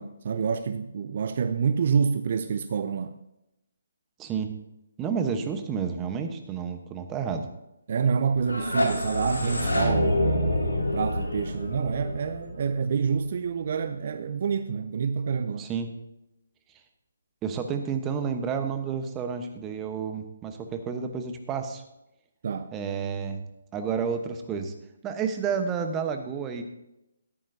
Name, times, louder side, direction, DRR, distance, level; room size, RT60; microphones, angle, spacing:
voice 1, 0.0-3.2 7.9-15.7 22.4-22.7, right 6 dB, 50° right, 0.5 m, -27 dB
voice 2, 4.2-4.5 5.0-7.5 15.6-15.9 17.4-21.8 22.7-23.4 23.7-24.7 25.0-26.6, right 6 dB, 15° right, 1.0 m, -30 dB
sound 1, 8.4-13.3, left 1 dB, 90° left, 2.6 m, -27 dB
13.5 x 10.5 x 2.7 m
figure-of-eight pair, 145°, 0 cm